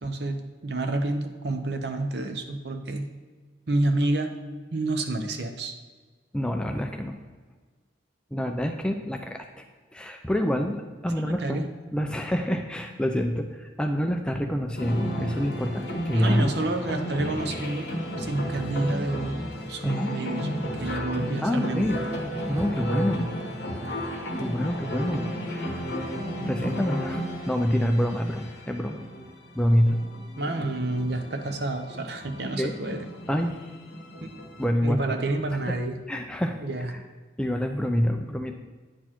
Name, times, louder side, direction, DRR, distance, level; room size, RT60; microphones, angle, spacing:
voice 1, 0.0-3.1 3.7-4.3 4.7-5.7 11.2-11.7 16.1-17.9 18.2-19.4 19.7-22.0 30.4-33.1 34.2-34.3 34.8-36.0 36.6-36.9, right 2 dB, 55° right, 6 dB, 0.7 m, -29 dB
voice 2, 6.3-7.1 8.3-9.6 9.9-11.6 11.9-16.5 19.8-20.1 21.4-22.0 22.5-23.4 24.4-26.0 26.5-29.0 29.5-30.0 32.6-32.7 33.3-33.6 34.6-35.2 36.1-36.6 36.9-37.0 37.4-38.5, equal, 5° left, 4 dB, 0.3 m, -27 dB
sound 1, 14.8-34.7, equal, 55° left, 1.1 m, -33 dB
9.2 x 4.3 x 4.4 m, 1.4 s
head